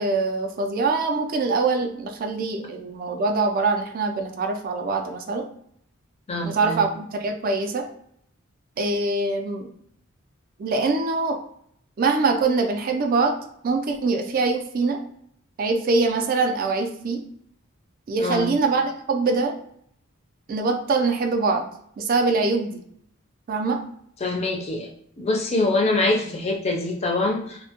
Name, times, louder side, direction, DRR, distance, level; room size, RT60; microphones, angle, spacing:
voice 1, 0.0-5.4 6.4-7.9 8.8-9.7 10.6-11.4 12.0-13.4 13.6-15.0 15.6-17.2 18.1-19.5 20.5-21.7 22.0-22.7 23.5-23.8, right 3 dB, 45° right, 4 dB, 0.3 m, -23 dB
voice 2, 6.3-6.8 18.2-18.5 24.2-24.9 25.2-27.6, left 2 dB, 30° left, 1 dB, 0.4 m, -24 dB
2.1 x 2.1 x 2.7 m, 0.68 s
head